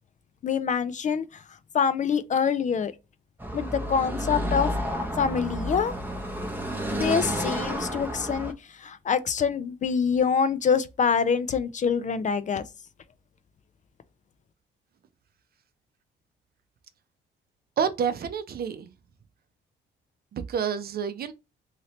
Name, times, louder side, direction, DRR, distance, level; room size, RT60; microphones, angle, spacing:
voice 1, 0.4-1.2 1.7-2.9 3.5-4.7 5.2-5.9 6.9-8.5 8.8-12.6, left 6 dB, 40° left, 0.4 m, -25 dB
Car passing by / Traffic noise roadway noise, 3.4-8.5, equal, 10° right, 0.7 m, -30 dB
voice 2, 17.8-18.9 20.3-21.3, right 7 dB, 50° right, 0.6 m, -28 dB
2.8 x 2.8 x 3.0 m
cardioid pair, 90°, 20 cm